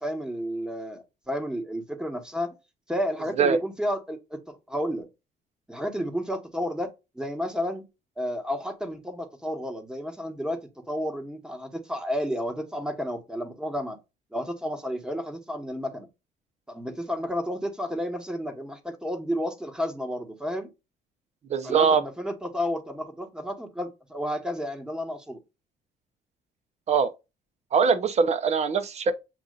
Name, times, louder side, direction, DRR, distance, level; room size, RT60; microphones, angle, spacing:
voice 1, 0.0-2.5 2.9-5.1 5.7-7.8 8.2-14.0 14.3-16.1 16.7-20.7 21.6-25.4, equal, 5° right, 1.3 m, -31 dB
voice 2, 21.5-22.0 26.9-27.1 27.7-29.1, right 6 dB, 40° right, 0.9 m, -22 dB
7.9 x 2.7 x 2.5 m
cardioid pair, 110°, 17 cm